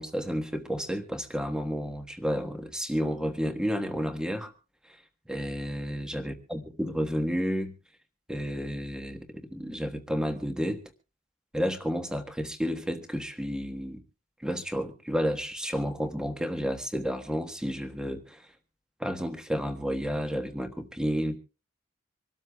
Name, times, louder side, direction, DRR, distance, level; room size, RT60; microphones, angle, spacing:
voice 1, 0.0-4.5 5.3-7.7 8.3-10.8 11.5-14.0 14.4-18.4 19.0-21.4, equal, 5° right, 5 dB, 1.4 m, -31 dB
26.0 x 13.0 x 2.4 m, 0.34 s
head